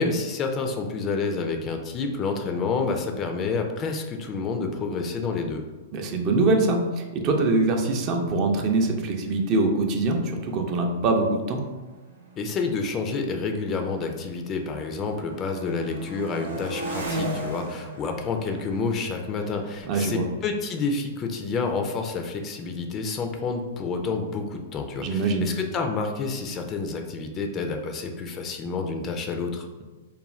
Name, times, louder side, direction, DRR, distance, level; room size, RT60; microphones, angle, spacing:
voice 1, 0.0-5.6 12.4-29.7, left 4 dB, 30° left, 4 dB, 0.3 m, -29 dB
voice 2, 5.9-11.6 19.8-20.3 25.0-25.5, right 2 dB, 40° right, 3 dB, 0.4 m, -23 dB
sound 1, 9.0-9.1 9.3-9.7 10.4-14.3 14.7-21.3, right 1 dB, 85° right, 0.6 m, -38 dB
2.4 x 2.3 x 3.1 m, 1.2 s
hypercardioid pair, 110°, 0 cm